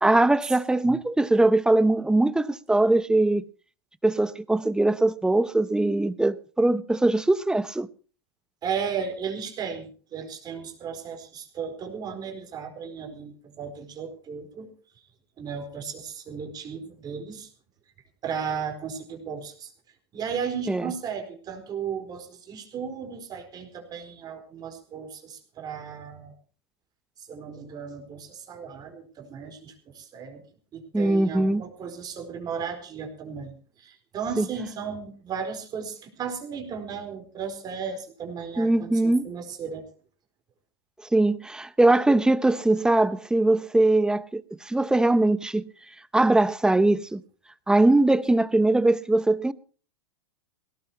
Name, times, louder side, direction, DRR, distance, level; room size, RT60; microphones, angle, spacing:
voice 1, 0.0-3.4 4.0-7.9 20.7-20.9 30.9-31.6 34.4-34.5 38.6-39.3 41.1-45.7 46.1-47.2 47.7-49.5, right 2 dB, 5° right, 0.8 m, -21 dB
voice 2, 8.6-14.7 15.4-17.5 18.2-19.7 20.1-26.3 27.2-30.4 30.7-39.8, right 6 dB, 30° right, 4.3 m, -35 dB
20.0 x 17.5 x 2.9 m
hypercardioid pair, 105°, 13 cm